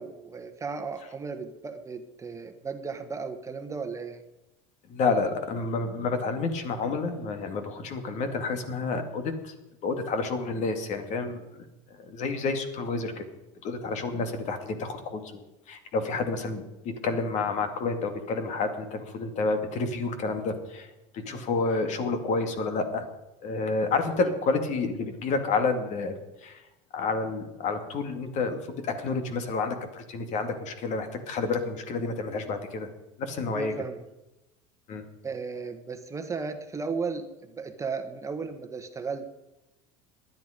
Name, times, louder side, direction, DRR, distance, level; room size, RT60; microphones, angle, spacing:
voice 1, 0.0-4.2 21.2-21.5 33.5-34.0 35.2-39.3, right 4 dB, 20° right, 7 dB, 1.4 m, -35 dB
voice 2, 4.9-9.5 9.8-13.2 13.6-23.1 23.4-26.1 26.4-26.6 26.9-32.9 33.2-33.7 34.9-35.0, left 3 dB, 50° left, 7 dB, 2.4 m, -29 dB
19.0 x 11.0 x 5.2 m, 0.97 s
supercardioid pair, 110°, 16 cm